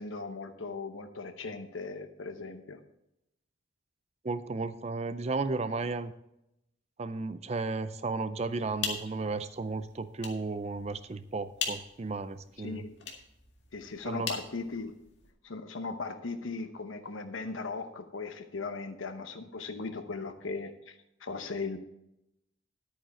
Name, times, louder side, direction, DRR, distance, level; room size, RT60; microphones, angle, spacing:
voice 1, 0.0-2.8 12.6-13.0 13.7-14.9 15.4-21.8, left 4 dB, 85° left, 7 dB, 0.9 m, -38 dB
voice 2, 4.2-6.1 7.0-12.8 14.0-14.3, right 3 dB, 35° right, 13 dB, 0.4 m, -34 dB
sound 1, 8.5-15.3, left 6 dB, 60° left, 2.0 m, -41 dB
10.5 x 9.0 x 4.3 m, 0.83 s
head